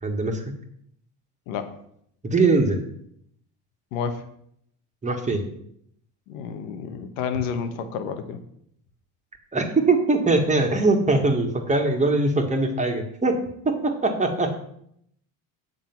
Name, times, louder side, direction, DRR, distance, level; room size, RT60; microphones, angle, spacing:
voice 1, 0.0-0.4 2.2-2.8 5.0-5.5 9.5-13.4 13.6-14.6, right 3 dB, 20° right, 3 dB, 1.6 m, -21 dB
voice 2, 1.5-1.8 3.9-4.3 6.3-8.4, left 6 dB, 90° left, 8 dB, 1.3 m, -30 dB
7.6 x 6.7 x 5.9 m, 0.71 s
supercardioid pair, 110°, 38 cm